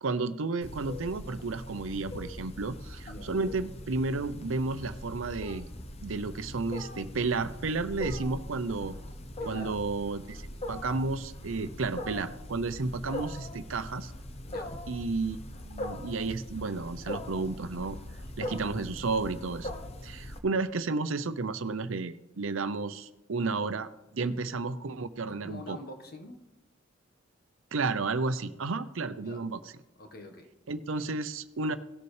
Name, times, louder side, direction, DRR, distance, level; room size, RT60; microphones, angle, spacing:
voice 1, 0.0-5.7 6.0-8.9 9.4-14.1 14.9-15.4 15.6-18.0 18.4-19.7 20.0-25.8 27.7-29.6 30.7-31.8, right 3 dB, 80° right, 12 dB, 0.6 m, -32 dB
Wild animals, 0.6-20.4, left 1 dB, 30° left, 0.8 m, -41 dB
voice 2, 3.0-3.4 9.4-9.8 14.5-14.8 24.2-24.4 25.3-26.4 29.2-29.4 30.0-30.5, left 1 dB, 50° left, 4 dB, 1.4 m, -45 dB
17.5 x 6.9 x 3.3 m, 1.0 s
head